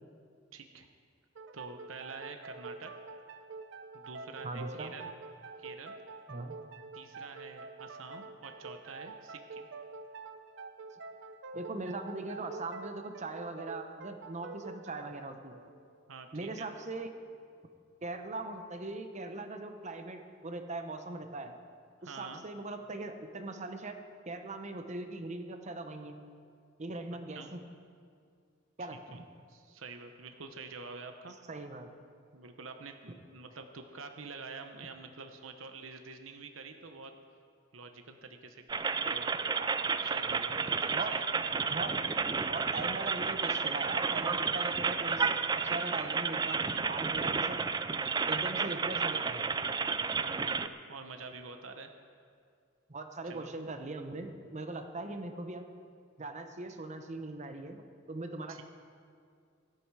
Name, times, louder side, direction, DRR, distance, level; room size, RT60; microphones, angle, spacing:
voice 1, 0.5-0.9 1.5-2.9 3.9-5.1 5.6-6.0 6.9-9.7 16.1-16.7 22.0-22.4 27.1-27.5 28.8-29.2 29.5-31.3 32.3-37.1 37.7-39.3 40.0-41.4 50.0-51.9 53.2-53.5 58.5-58.6, right 4 dB, 85° right, 6 dB, 1.0 m, -47 dB
sound 1, 1.3-16.7, right 3 dB, 65° right, 0.7 m, -47 dB
voice 2, 4.4-4.9 6.3-6.6 11.5-15.6 16.3-17.1 18.0-21.5 22.0-24.0 24.3-26.2 26.8-27.6 28.8-29.3 31.5-31.9 39.5-39.8 40.9-41.2 41.7-42.0 42.5-45.3 45.5-47.6 48.3-49.5 52.9-55.7 56.2-57.8 58.1-58.6, right 2 dB, 35° right, 6 dB, 0.9 m, -40 dB
sound 2, 38.7-50.7, right 5 dB, 20° right, 0.4 m, -31 dB
16.5 x 12.0 x 4.8 m, 2.2 s
head